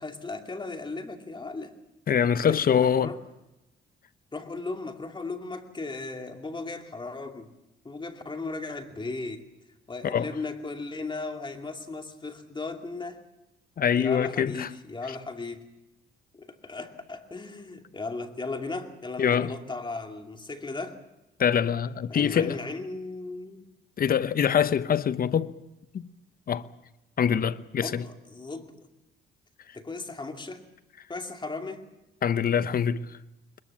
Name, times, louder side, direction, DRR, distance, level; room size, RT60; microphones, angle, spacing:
voice 1, 0.0-1.7 2.5-3.2 4.3-7.5 7.8-9.4 9.9-13.2 13.9-15.6 16.3-21.0 22.1-23.6 27.8-28.7 29.7-30.6 31.1-31.8, left 3 dB, 25° left, 2.5 m, -36 dB
voice 2, 2.1-3.1 10.0-10.3 13.8-14.7 19.2-19.5 21.4-22.6 24.0-25.5 25.9-26.1 26.5-26.7 27.2-28.0 32.2-33.1, left 8 dB, 50° left, 0.9 m, -24 dB
21.5 x 21.0 x 7.4 m
cardioid pair, 90°, 20 cm